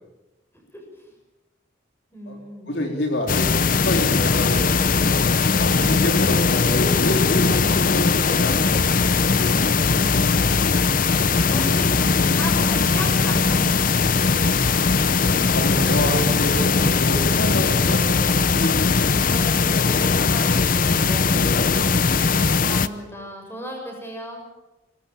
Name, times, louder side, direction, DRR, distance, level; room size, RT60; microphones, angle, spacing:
voice 1, 0.7-1.1 2.1-2.8 7.5-8.0 11.5-14.1 19.3-24.4, equal, 15° left, 2 dB, 6.3 m, -36 dB
voice 2, 2.7-4.7 5.6-9.0 15.5-18.8, left 1 dB, 65° left, 2 dB, 3.8 m, -28 dB
sound 1, 3.3-22.9, left 4 dB, 45° left, 0.7 m, -19 dB
23.5 x 19.5 x 7.3 m, 1.0 s
head